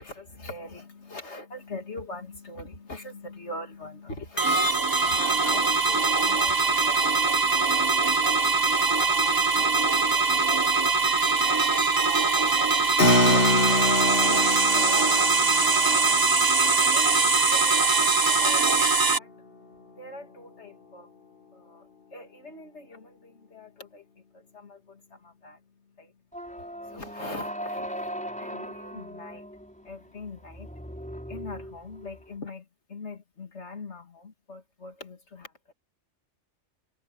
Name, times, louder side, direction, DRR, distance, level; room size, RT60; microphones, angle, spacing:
voice 1, 0.0-26.2 26.6-28.1 28.4-29.5 29.8-30.7 31.3-35.7, left 2 dB, 75° left, 2.9 m, -44 dB
sound 1, 4.4-19.2, right 4 dB, 20° right, 0.8 m, -22 dB
Keyboard (musical), 13.0-19.0, left 2 dB, 50° left, 2.3 m, -27 dB
sound 2, 26.3-32.3, equal, 5° left, 6.1 m, -39 dB
omnidirectional pair, 1.2 m